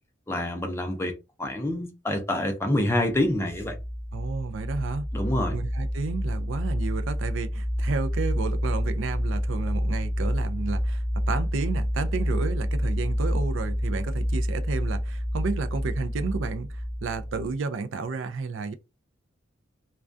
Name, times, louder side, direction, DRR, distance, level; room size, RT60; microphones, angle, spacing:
voice 1, 0.3-3.8 5.1-5.6, left 1 dB, 15° left, 0.4 m, -27 dB
sound 1, 3.5-17.5, equal, 30° right, 0.8 m, -28 dB
voice 2, 4.1-5.1 5.5-18.7, right 4 dB, 75° right, 0.4 m, -32 dB
2.3 x 2.2 x 2.5 m
head